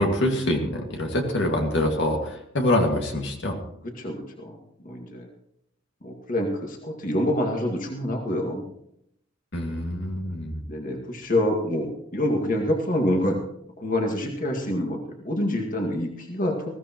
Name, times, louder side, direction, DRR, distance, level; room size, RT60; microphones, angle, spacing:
voice 1, 0.0-3.6 9.5-10.6, left 1 dB, 65° left, 2 dB, 2.1 m, -25 dB
voice 2, 3.8-4.6 4.8-5.3 6.0-8.6 10.7-13.4 13.8-16.7, left 1 dB, 45° left, 2 dB, 2.0 m, -26 dB
20.5 x 15.5 x 3.0 m, 0.75 s
head